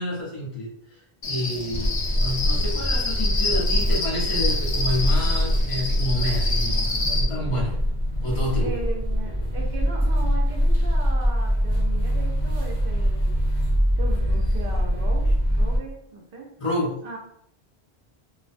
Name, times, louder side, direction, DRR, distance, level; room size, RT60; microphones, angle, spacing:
voice 1, 0.0-7.7 8.2-8.7 16.6-17.0, left 1 dB, 35° left, -5 dB, 0.8 m, -29 dB
Cricket, 1.2-7.2, left 3 dB, 85° left, 1.0 m, -28 dB
sound 1, 1.7-15.8, equal, 25° right, 0.9 m, -23 dB
voice 2, 8.6-13.4 14.0-16.5 17.0-17.2, right 3 dB, 65° right, 0 dB, 0.8 m, -37 dB
2.4 x 2.1 x 2.5 m, 0.71 s
omnidirectional pair, 1.1 m